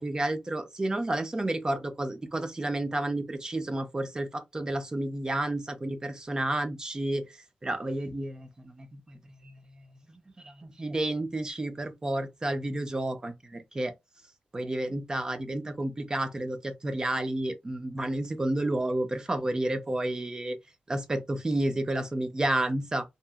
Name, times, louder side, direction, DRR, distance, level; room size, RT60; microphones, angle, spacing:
voice 1, 0.0-7.3 7.6-9.9 10.4-13.9 14.5-20.6 20.9-23.0, right 1 dB, 25° right, 0.5 m, -31 dB
2.8 x 2.4 x 2.3 m
wide cardioid pair, 140°, 3 cm